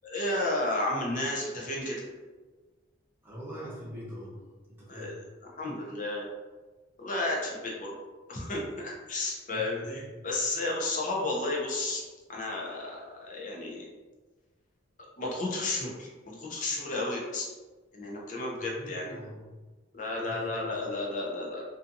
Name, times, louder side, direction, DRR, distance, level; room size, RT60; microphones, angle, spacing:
voice 1, 0.0-2.1 4.9-5.2 5.6-6.3 7.0-7.9 8.3-12.0 12.3-13.8 15.2-17.5 17.9-19.1 19.9-21.6, left 2 dB, 40° left, -3 dB, 0.6 m, -32 dB
voice 2, 3.2-4.4 4.7-5.2 9.5-10.2 10.6-10.8 18.5-19.4 20.2-20.7, equal, 10° right, -7 dB, 0.8 m, -43 dB
2.5 x 2.4 x 2.6 m, 1.3 s
head